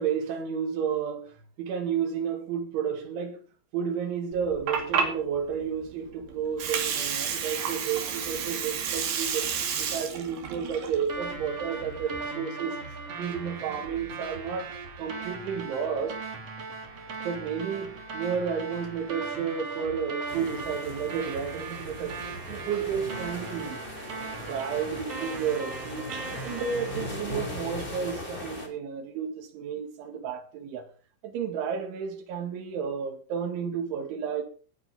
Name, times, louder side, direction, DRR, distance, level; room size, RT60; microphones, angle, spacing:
voice 1, 0.0-3.4 3.7-9.5 9.8-12.8 13.2-16.2 17.2-22.2 22.5-23.8 24.4-30.9 31.2-34.4, right 7 dB, 80° right, 4.6 m, -32 dB
Water, 4.3-12.3, right 7 dB, 60° right, 4.3 m, -31 dB
sound 1, 11.1-27.1, right 4 dB, 40° right, 3.1 m, -38 dB
sound 2, 20.3-28.7, left 1 dB, 15° left, 3.1 m, -39 dB
18.0 x 9.3 x 5.6 m
omnidirectional pair, 5.4 m